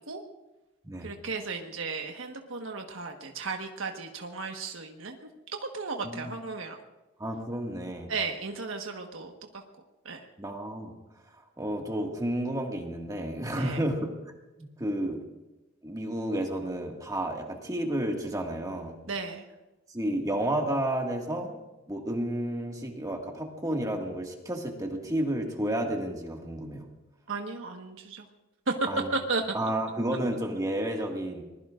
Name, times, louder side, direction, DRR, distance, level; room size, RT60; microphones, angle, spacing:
voice 1, 1.0-5.2 5.7-6.8 8.1-9.6 10.0-10.3 13.5-13.8 19.1-19.4 27.3-28.2 28.7-28.8 29.1-29.4, right 4 dB, 90° right, 3 dB, 1.4 m, -34 dB
voice 2, 7.2-8.1 10.4-10.9 11.6-14.1 14.6-15.2 15.8-19.0 19.9-21.6 21.9-26.9 28.9-29.1 29.5-31.4, right 1 dB, 20° right, 1 dB, 1.9 m, -31 dB
25.5 x 20.5 x 2.5 m, 1.1 s
head